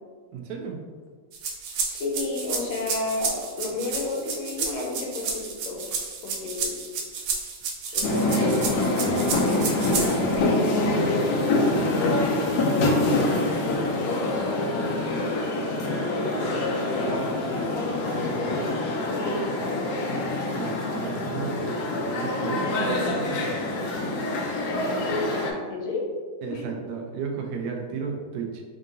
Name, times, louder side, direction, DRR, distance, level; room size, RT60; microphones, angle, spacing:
voice 1, 0.3-0.8 20.5-23.9 26.4-28.6, right 5 dB, 70° right, 2 dB, 1.0 m, -34 dB
sound 1, 1.3-10.4, right 5 dB, 90° right, 1.5 m, -31 dB
voice 2, 1.8-5.8 6.2-6.7 7.9-9.8 10.3-11.6 11.9-15.6 16.0-18.7 19.0-19.9 25.1-26.0 26.5-26.6, left 2 dB, 90° left, -1 dB, 1.6 m, -33 dB
sound 2, 8.0-25.5, left 2 dB, 70° left, 1.0 m, -25 dB
3.7 x 3.7 x 2.6 m, 1.5 s
omnidirectional pair, 2.2 m